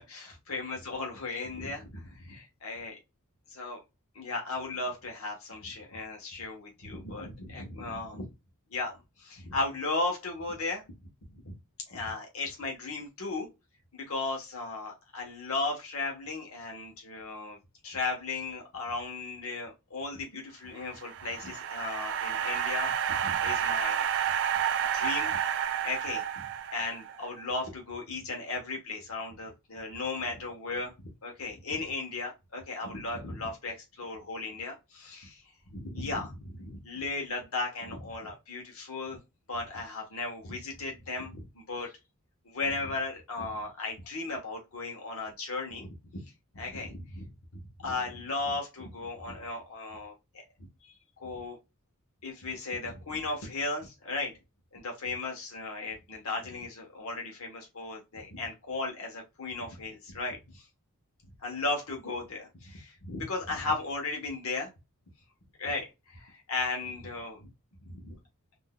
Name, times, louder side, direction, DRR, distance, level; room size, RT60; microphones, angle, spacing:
voice 1, 0.0-3.0 3.5-3.8 4.1-8.3 8.7-10.8 11.4-11.5 11.9-13.5 13.9-17.6 17.8-24.1 24.9-25.3 25.8-26.2 26.7-35.4 35.7-39.2 39.5-41.9 42.4-45.9 46.2-50.4 51.2-51.6 52.2-54.3 54.7-60.6 61.4-64.7 65.6-67.5 67.8-68.2, left 3 dB, 65° left, 1 dB, 1.1 m, -36 dB
sound 1, 20.8-27.2, right 9 dB, 55° right, 0.4 m, -30 dB
3.7 x 2.7 x 2.2 m, 0.24 s
head